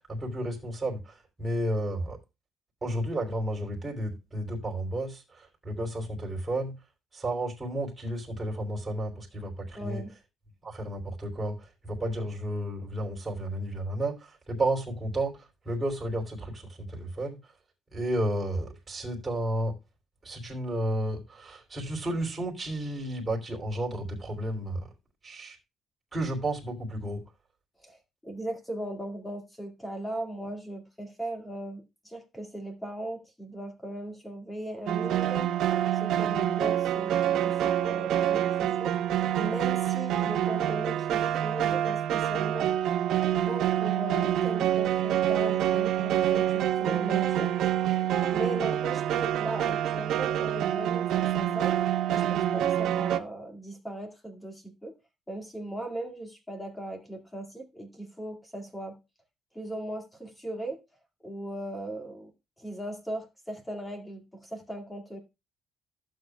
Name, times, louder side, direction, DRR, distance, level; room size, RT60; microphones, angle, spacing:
voice 1, 0.1-1.0 1.4-2.2 2.8-5.2 5.6-6.7 7.1-9.5 9.8-10.0 10.6-11.6 11.8-14.2 14.5-15.4 15.6-16.6 16.9-17.4 17.9-19.7 20.2-24.8 25.2-25.5 26.1-27.2, right 1 dB, 15° right, 3.2 m, -32 dB
voice 2, 9.8-10.1 27.8-42.7 43.3-47.5 47.9-48.0 48.3-51.8 52.1-54.9 55.3-59.0 59.5-60.8 61.2-62.3 62.6-65.2, right 1 dB, 10° left, 2.1 m, -38 dB
sound 1, 34.9-53.2, right 11 dB, 65° right, 1.0 m, -27 dB
15.5 x 7.8 x 2.3 m
cardioid pair, 170°, 0 cm